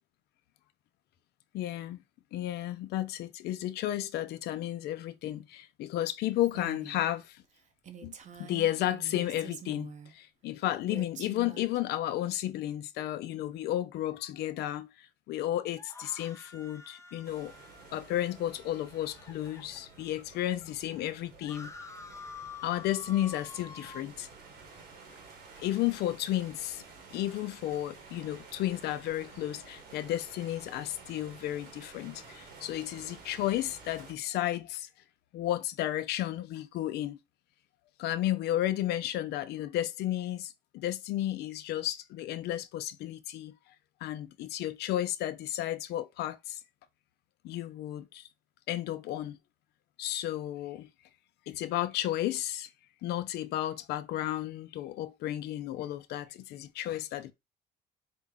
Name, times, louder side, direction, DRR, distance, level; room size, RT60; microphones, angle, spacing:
voice 1, 1.5-2.0 2.3-7.4 8.0-17.5 17.9-21.7 22.6-24.3 25.6-26.8 27.1-34.9 35.3-37.2 38.0-43.5 44.0-46.6 47.4-48.2 48.7-49.4 50.0-50.9 51.5-52.7 53.0-57.3, left 13 dB, 75° left, 0.5 m, -33 dB
Female speech woman speaking, 6.4-7.0 7.4-7.5 7.8-10.1 10.9-11.8, right 6 dB, 45° right, 0.7 m, -46 dB
sound 1, 15.7-20.2 20.7-20.8 21.0-24.0, left 4 dB, 15° left, 0.6 m, -48 dB
sound 2, 17.2-34.1, right 4 dB, 80° right, 1.4 m, -52 dB
4.4 x 2.1 x 3.6 m
cardioid pair, 110°, 17 cm